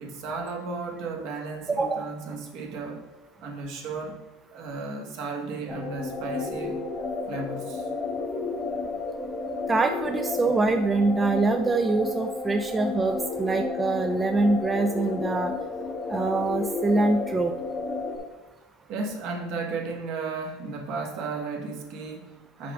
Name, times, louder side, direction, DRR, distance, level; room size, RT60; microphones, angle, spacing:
voice 1, 0.0-3.1 3.4-4.2 4.5-6.8 7.3-7.9 18.9-22.7, right 4 dB, 60° right, 2 dB, 1.3 m, -34 dB
sound 1, 5.7-18.2, left 3 dB, 20° left, 0.7 m, -32 dB
voice 2, 9.7-15.5 16.1-17.5, right 3 dB, 15° right, 6 dB, 0.4 m, -24 dB
5.9 x 4.9 x 3.6 m, 1.3 s
supercardioid pair, 125°, 0 cm